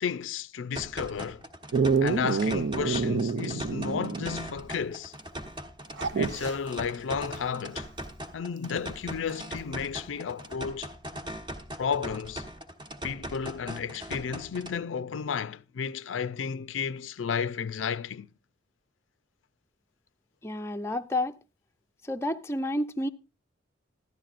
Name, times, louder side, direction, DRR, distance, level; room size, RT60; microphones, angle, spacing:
voice 1, 0.0-1.4 2.0-5.2 6.1-7.9 8.3-10.9 11.8-12.4 13.0-18.3, left 6 dB, 80° left, 0.4 m, -32 dB
sound 1, 0.8-14.8, equal, 25° right, 1.0 m, -40 dB
Dog, 1.7-4.5 4.8-4.9 6.0-6.6 8.6-8.7, right 4 dB, 65° right, 0.5 m, -27 dB
voice 2, 20.4-21.4 22.0-23.1, left 1 dB, 15° left, 0.5 m, -30 dB
14.5 x 11.5 x 2.5 m
head